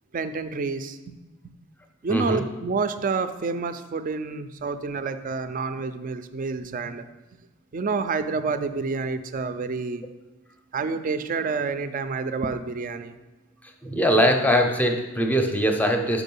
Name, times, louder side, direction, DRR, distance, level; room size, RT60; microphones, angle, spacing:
voice 1, 0.1-1.2 2.0-7.0 7.7-10.1 10.7-13.2, right 4 dB, 40° right, 10 dB, 0.4 m, -28 dB
voice 2, 2.1-2.4 13.8-16.2, equal, 10° left, 4 dB, 0.6 m, -21 dB
6.0 x 4.9 x 5.4 m, 1.1 s
head